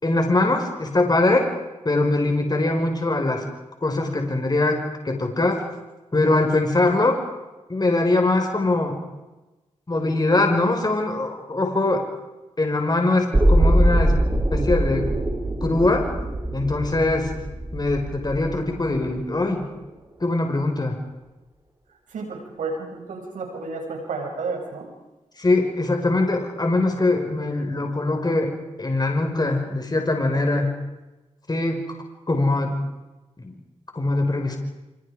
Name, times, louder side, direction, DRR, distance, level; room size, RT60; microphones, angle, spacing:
voice 1, 0.0-1.5 1.9-3.4 3.8-5.6 6.1-7.2 7.7-9.0 9.9-12.0 12.6-14.2 14.5-15.1 15.6-16.1 16.5-17.3 17.7-19.6 20.2-21.0 25.4-30.7 31.5-31.8 32.3-32.8 33.4-33.5 33.9-34.6, left 2 dB, 30° left, 3 dB, 5.4 m, -22 dB
sound 1, 13.3-19.3 19.6-19.7, right 1 dB, 25° right, 6.2 m, -22 dB
voice 2, 22.1-24.9 30.5-30.6, right 3 dB, 90° right, 2 dB, 7.1 m, -31 dB
28.0 x 26.5 x 5.1 m, 1.1 s
cardioid pair, 55°, 13 cm